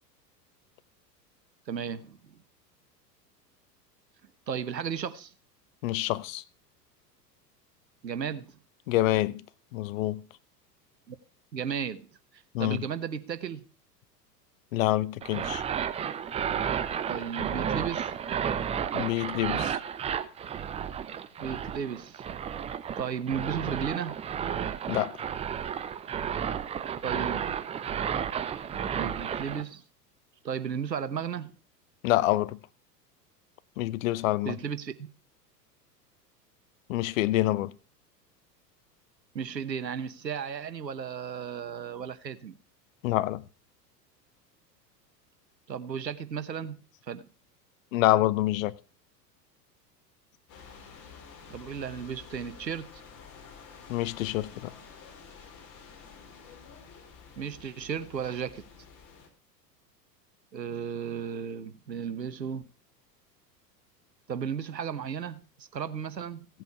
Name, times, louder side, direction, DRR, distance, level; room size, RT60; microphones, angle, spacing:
voice 1, 1.7-2.4 4.5-5.3 8.0-8.6 11.1-11.2 11.5-12.1 12.6-13.6 17.1-18.1 21.4-22.3 23.0-24.2 27.0-27.6 28.9-29.8 30.4-31.5 34.4-34.9 39.3-42.6 45.7-46.8 47.1-47.3 51.5-53.0 57.4-58.6 60.5-62.7 64.3-66.5, right 7 dB, 85° right, 1.1 m, -34 dB
voice 2, 5.8-6.4 8.9-9.4 9.7-10.2 12.5-12.8 14.7-15.6 18.9-19.8 24.9-25.2 32.0-32.6 33.8-34.6 36.9-37.7 43.0-43.4 47.9-48.7 53.9-54.7, left 15 dB, 55° left, 0.8 m, -26 dB
sound 1, 15.2-29.6, right 8 dB, 15° right, 0.5 m, -32 dB
sound 2, 50.5-59.3, left 6 dB, 35° left, 4.0 m, -50 dB
16.0 x 8.0 x 4.8 m
figure-of-eight pair, 90°, 49 cm